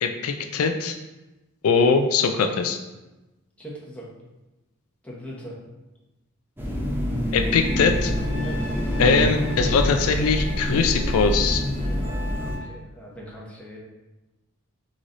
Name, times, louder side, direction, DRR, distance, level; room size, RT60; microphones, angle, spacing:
voice 1, 0.0-0.9 1.6-2.8 7.3-8.1 9.0-11.6, left 5 dB, 80° left, 6 dB, 0.4 m, -21 dB
voice 2, 3.6-4.1 5.0-5.6 8.3-8.6 11.8-13.8, equal, 5° left, -6 dB, 1.0 m, -40 dB
sound 1, 6.6-12.6, equal, 10° right, 0.6 m, -26 dB
Trumpet, 7.6-12.7, left 1 dB, 60° left, 0.8 m, -40 dB
3.9 x 3.1 x 3.8 m, 1.1 s
head